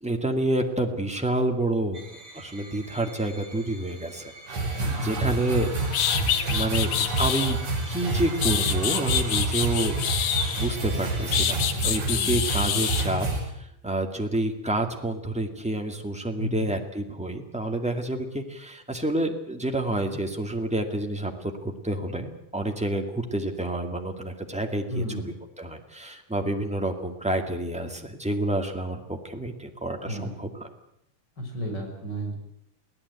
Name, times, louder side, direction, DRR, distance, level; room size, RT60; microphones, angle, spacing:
voice 1, 0.0-4.7 5.0-5.8 6.5-6.9 7.2-7.6 7.9-10.0 10.6-13.3 13.8-30.7, right 1 dB, 5° right, 3 dB, 1.3 m, -29 dB
sound 1, 1.9-11.6, right 2 dB, 45° right, 3.8 m, -45 dB
sound 2, 4.5-13.4, right 3 dB, 65° right, 6.4 m, -28 dB
voice 2, 4.7-5.6 6.8-7.1 16.4-16.7 24.9-25.3 30.1-30.3 31.4-32.3, equal, 30° left, 2 dB, 6.4 m, -33 dB
sound 3, 5.9-7.5 8.1-10.8 11.3-13.1, left 9 dB, 80° left, 2.9 m, -26 dB
24.0 x 17.0 x 8.3 m, 0.75 s
omnidirectional pair, 3.7 m